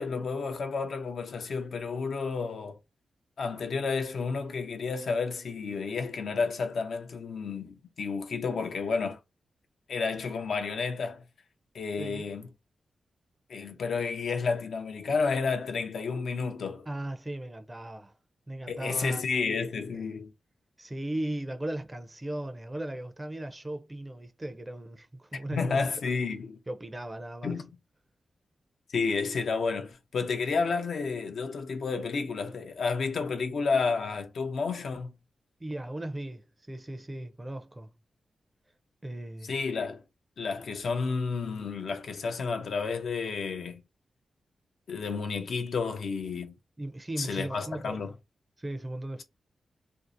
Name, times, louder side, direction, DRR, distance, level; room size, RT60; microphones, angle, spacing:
voice 1, 0.0-2.8 3.4-9.2 9.9-11.2 11.7-12.5 13.5-16.9 18.7-20.3 25.5-26.6 27.4-27.7 28.9-35.1 39.5-40.0 40.4-43.8 44.9-46.5 47.2-48.1, left 4 dB, 75° left, 0.5 m, -31 dB
voice 2, 12.0-12.3 16.9-18.2 18.5-19.2 19.9-20.0 20.8-25.9 26.7-27.6 35.6-37.9 39.0-39.5 46.8-48.0 48.6-49.2, right 1 dB, 20° right, 0.5 m, -37 dB
2.6 x 2.0 x 2.5 m
cardioid pair, 55°, 0 cm